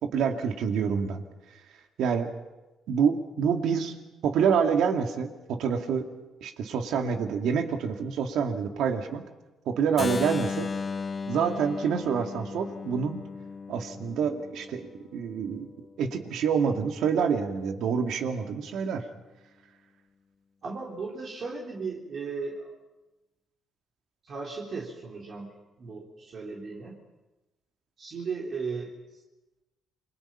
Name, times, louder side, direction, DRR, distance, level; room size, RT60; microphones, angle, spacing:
voice 1, 0.0-1.2 2.0-2.3 2.9-3.9 4.2-6.0 6.4-9.2 9.7-10.7 11.3-13.2 13.7-15.7 16.0-19.0, right 6 dB, 80° right, 5 dB, 2.2 m, -27 dB
Keyboard (musical), 10.0-15.8, left 5 dB, 35° left, 0.7 m, -36 dB
voice 2, 20.6-22.7 24.2-25.5 25.8-27.0 28.0-28.9, right 4 dB, 55° right, -2 dB, 3.8 m, -36 dB
28.5 x 22.0 x 5.7 m, 1.1 s
cardioid pair, 90°, 0 cm